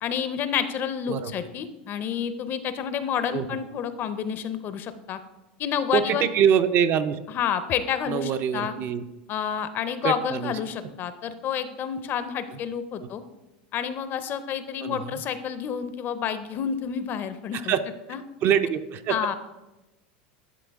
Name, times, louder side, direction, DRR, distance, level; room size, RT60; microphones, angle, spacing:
voice 1, 0.0-5.2 5.6-6.3 7.3-8.8 9.3-13.2 13.7-17.7 18.1-18.2 19.1-19.3, left 8 dB, 40° left, 12 dB, 0.5 m, -29 dB
voice 2, 5.9-7.2 8.1-9.0 10.0-10.5 14.8-15.1 17.5-17.8 18.4-19.3, right 8 dB, 45° right, 10 dB, 0.5 m, -24 dB
11.0 x 3.6 x 3.5 m, 1.0 s
supercardioid pair, 115°, 5 cm